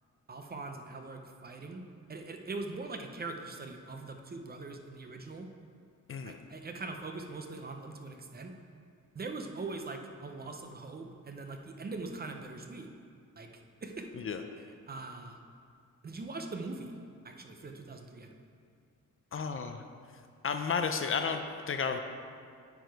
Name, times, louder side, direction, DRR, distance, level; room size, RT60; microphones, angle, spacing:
voice 1, 0.3-1.8 2.1-5.5 6.2-8.5 9.1-12.9 13.4-13.5 13.8-14.1 14.6-15.4 16.0-17.0 17.2-18.3, right 3 dB, 30° right, 4 dB, 0.6 m, -42 dB
voice 2, 19.3-19.8 20.4-21.4 21.7-22.0, left 6 dB, 45° left, 6 dB, 0.5 m, -32 dB
9.0 x 4.8 x 4.6 m, 2.3 s
cardioid pair, 115°, 32 cm